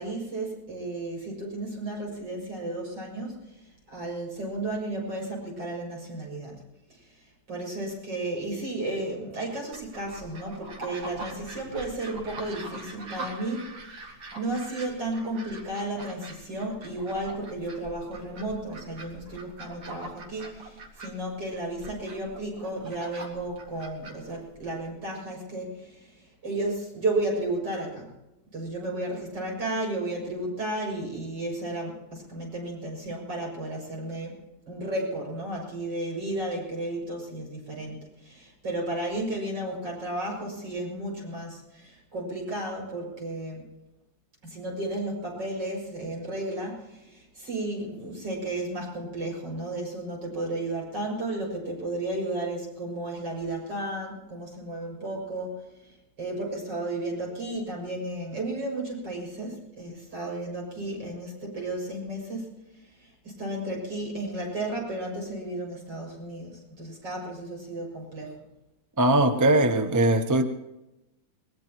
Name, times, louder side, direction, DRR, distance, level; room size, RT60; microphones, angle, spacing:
voice 1, 0.0-3.6 3.9-6.6 6.9-7.0 7.5-13.8 14.3-28.1 28.5-34.4 34.7-43.6 44.4-62.5 63.0-68.4, right 2 dB, 65° right, 7.2 m, -33 dB
sound 1, 9.7-24.9, right 2 dB, 80° right, 2.9 m, -43 dB
voice 2, 69.0-70.4, right 1 dB, 20° right, 0.4 m, -20 dB
22.5 x 19.5 x 3.0 m
omnidirectional pair, 2.1 m